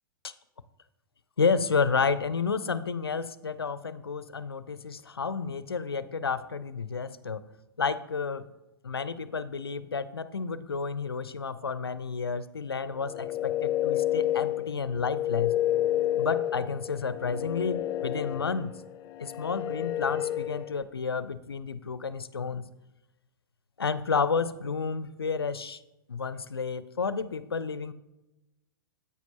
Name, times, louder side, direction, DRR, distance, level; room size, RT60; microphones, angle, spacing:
voice 1, 1.4-7.4 7.8-8.5 8.8-15.5 16.2-18.7 19.2-22.7 23.8-25.8 26.1-27.9, left 5 dB, 85° left, 15 dB, 0.5 m, -31 dB
sound 1, 12.9-20.8, left 13 dB, 30° left, 0.5 m, -30 dB
10.0 x 8.4 x 2.8 m, 0.98 s
figure-of-eight pair, 110°, 12 cm